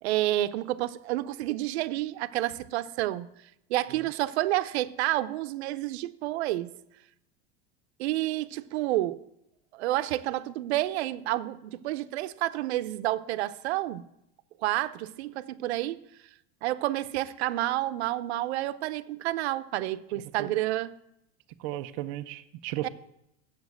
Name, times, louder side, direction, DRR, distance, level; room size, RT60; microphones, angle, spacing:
voice 1, 0.0-3.3 3.7-6.7 8.0-9.2 9.7-14.0 14.6-16.0 16.6-20.9 22.8-22.9, right 15 dB, 85° right, 0.6 m, -29 dB
voice 2, 21.6-22.9, right 15 dB, 35° right, 0.4 m, -35 dB
7.2 x 7.1 x 7.7 m
supercardioid pair, 175°, 32 cm